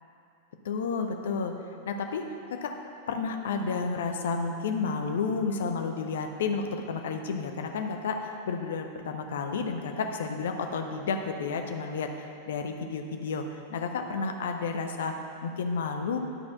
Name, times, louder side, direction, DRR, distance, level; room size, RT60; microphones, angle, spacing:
voice 1, 0.6-2.8 3.1-16.2, left 4 dB, 60° left, 4 dB, 0.7 m, -31 dB
11.0 x 4.3 x 5.6 m, 2.6 s
figure-of-eight pair, 90°, 0 cm